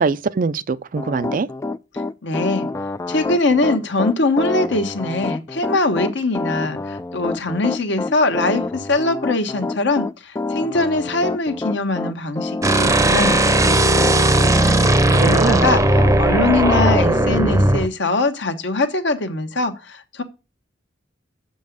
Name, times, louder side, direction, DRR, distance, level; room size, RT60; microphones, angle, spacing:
voice 1, 0.0-1.5 15.1-15.7, right 4 dB, 45° right, 0.4 m, -22 dB
Piano, 1.0-16.1 16.6-17.0, left 3 dB, 15° left, 0.3 m, -27 dB
voice 2, 1.9-2.7 3.1-14.3 14.6-20.2, left 2 dB, 65° left, 1.2 m, -22 dB
sound 1, 12.6-17.9, right 1 dB, 15° right, 0.7 m, -16 dB
7.0 x 5.3 x 6.4 m
head